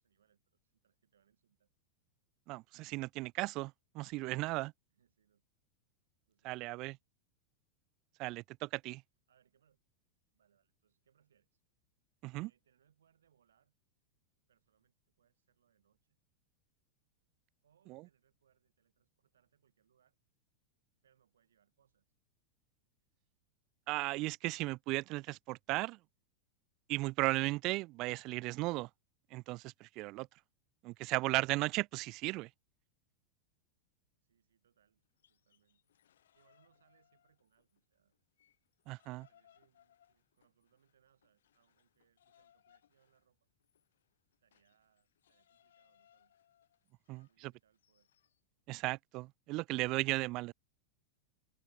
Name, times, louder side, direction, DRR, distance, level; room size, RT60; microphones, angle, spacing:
voice 1, 0.0-1.7 4.9-5.4 6.3-7.0 9.3-9.8 10.3-11.6 12.4-13.7 14.5-16.2 17.6-20.2 21.0-22.1 34.2-35.0 35.3-35.9 36.3-38.2 39.1-43.5 44.4-46.3 47.0-48.1, right 8 dB, 65° right, 7.3 m, -75 dB
voice 2, 2.5-4.7 6.4-6.9 8.2-9.0 12.2-12.5 17.9-18.0 23.9-26.0 26.9-28.9 29.3-30.3 30.8-32.5 38.9-39.3 47.1-47.2 48.7-50.5, right 21 dB, 40° right, 0.3 m, -36 dB
sound 1, 35.0-37.8 38.1-48.4, left 10 dB, 60° left, 3.1 m, -71 dB
figure-of-eight pair, 90°, 0 cm